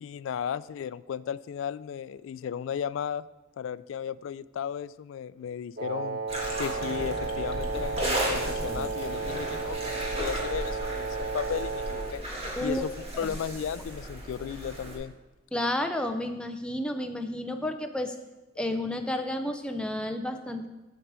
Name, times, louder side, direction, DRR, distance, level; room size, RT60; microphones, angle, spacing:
voice 1, 0.0-3.3 3.6-6.2 6.6-12.2 12.6-15.1, left 8 dB, 80° left, 19 dB, 0.3 m, -35 dB
Wind instrument woodwind instrument, 5.8-12.2, right 4 dB, 50° right, 0.8 m, -33 dB
sound 1, 6.3-15.0, right 1 dB, 30° right, 1.9 m, -35 dB
sound 2, 6.8-10.7, left 1 dB, 30° left, 1.0 m, -43 dB
voice 2, 12.6-12.9 15.5-18.1 18.6-20.7, left 1 dB, 5° left, 5 dB, 0.5 m, -31 dB
8.0 x 7.3 x 4.7 m, 1.1 s
head